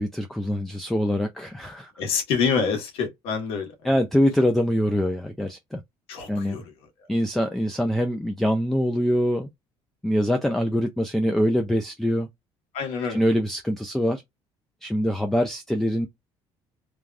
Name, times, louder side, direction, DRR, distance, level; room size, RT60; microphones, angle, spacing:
voice 1, 0.0-1.9 3.8-5.8 6.3-6.6 7.1-9.5 10.0-12.3 13.1-14.2 14.8-16.1, equal, 5° left, 0.3 m, -24 dB
voice 2, 2.0-4.0 6.1-6.7 12.7-13.2, left 5 dB, 70° left, 1.4 m, -27 dB
3.3 x 2.3 x 2.4 m
cardioid pair, 170°, 10 cm